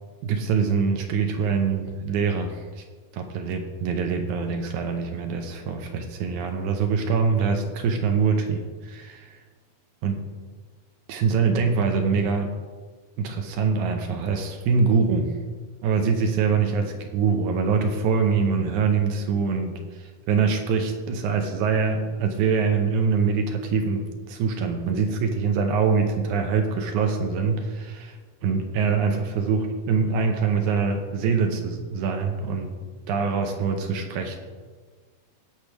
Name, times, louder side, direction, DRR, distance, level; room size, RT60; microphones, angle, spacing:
voice 1, 0.2-2.8 3.1-9.4 10.0-10.2 11.1-12.5 13.2-15.3 15.8-28.2 28.4-32.7 33.1-34.4, right 5 dB, 75° right, 4 dB, 2.1 m, -24 dB
17.5 x 5.9 x 3.4 m, 1.5 s
omnidirectional pair, 3.9 m